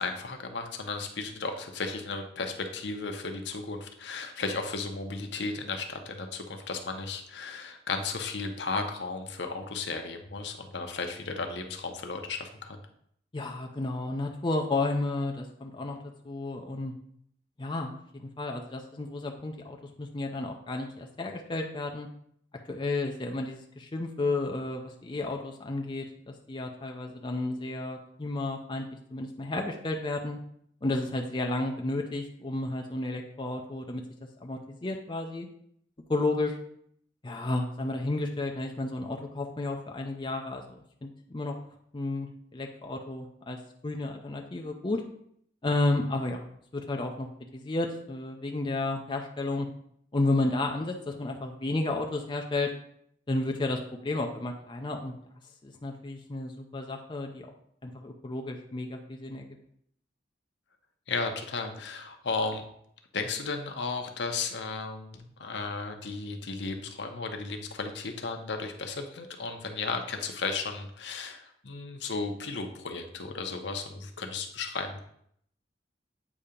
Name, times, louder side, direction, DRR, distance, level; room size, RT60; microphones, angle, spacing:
voice 1, 0.0-12.8 61.1-62.6 63.1-75.0, left 4 dB, 70° left, 5 dB, 0.8 m, -34 dB
voice 2, 13.3-16.0 16.2-16.9 17.6-22.1 22.7-30.4 30.8-34.0 34.4-35.5 36.1-36.6 37.2-41.5 41.9-43.6 43.8-45.0 45.6-46.5 46.7-47.3 47.5-49.7 50.1-52.7 53.3-55.1 55.6-57.5 57.8-59.5, left 2 dB, 25° left, 2 dB, 0.5 m, -32 dB
8.3 x 2.8 x 5.1 m, 0.69 s
head